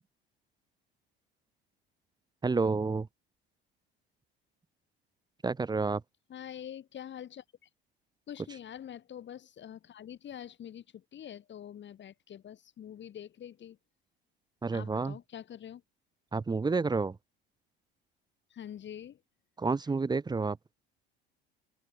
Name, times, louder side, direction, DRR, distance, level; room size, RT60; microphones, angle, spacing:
voice 1, 2.4-3.1 5.4-6.0 14.6-15.2 16.3-17.2 19.6-20.6, right 4 dB, 15° right, 0.9 m, -29 dB
voice 2, 6.3-7.7 8.3-13.8 14.7-15.8 18.5-19.2, left 10 dB, 40° left, 3.7 m, -45 dB
open air
figure-of-eight pair, 60°, 29 cm